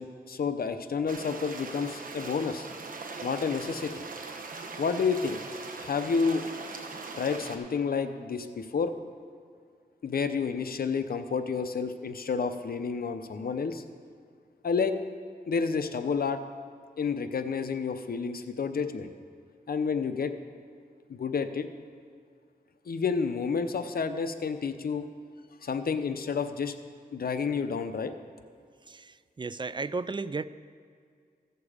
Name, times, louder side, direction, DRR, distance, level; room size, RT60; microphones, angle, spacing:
voice 1, 0.0-2.7 3.2-4.0 4.8-5.4 5.8-6.4 7.2-8.9 10.0-13.8 14.6-14.9 15.5-16.4 17.0-19.1 19.7-20.3 21.1-21.7 22.9-25.1 25.6-26.7 27.1-28.1, left 5 dB, 70° left, 9 dB, 0.7 m, -30 dB
sound 1, 1.1-7.6, right 4 dB, 60° right, 1.0 m, -40 dB
voice 2, 28.8-30.4, right 4 dB, 30° right, 15 dB, 0.3 m, -34 dB
15.0 x 6.9 x 4.9 m, 2.2 s
wide cardioid pair, 85°, 16 cm